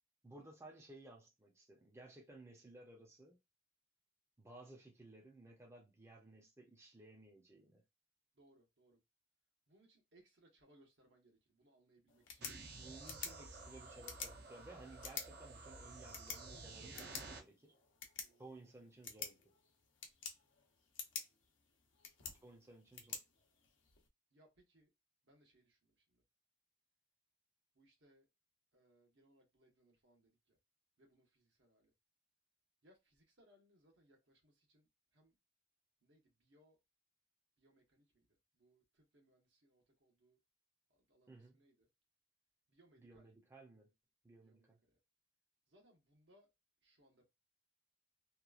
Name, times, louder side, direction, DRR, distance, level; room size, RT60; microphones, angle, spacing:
voice 1, 0.2-3.4 4.4-7.8 12.4-17.7 18.4-19.4 22.4-23.2 41.3-41.6 43.0-43.9 44.2-44.8, right 2 dB, 15° right, 0.5 m, -58 dB
voice 2, 8.3-9.0 9.7-12.9 18.2-18.5 24.3-24.9 25.2-26.2 27.7-28.3 28.7-30.6 31.0-31.9 32.8-35.4 36.0-36.8 37.6-40.4 40.9-41.9 42.7-43.3 44.4-45.0 45.7-46.5 46.8-47.2, right 1 dB, 75° right, 1.1 m, -71 dB
sound 1, 12.1-24.1, left 6 dB, 80° left, 0.7 m, -51 dB
sound 2, 12.4-17.4, right 3 dB, 60° right, 0.6 m, -52 dB
2.9 x 2.3 x 2.4 m
head